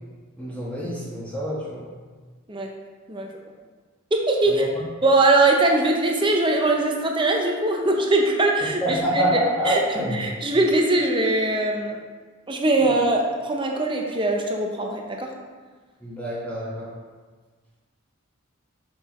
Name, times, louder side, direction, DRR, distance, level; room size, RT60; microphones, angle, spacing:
voice 1, 0.4-1.8 4.5-4.6 8.8-10.2 16.0-16.9, equal, 5° left, -7 dB, 1.3 m, -26 dB
voice 2, 4.1-4.7 5.0-9.4 9.6-12.0 12.5-15.3, right 2 dB, 25° right, 1 dB, 0.6 m, -21 dB
6.1 x 5.7 x 3.1 m, 1.4 s
head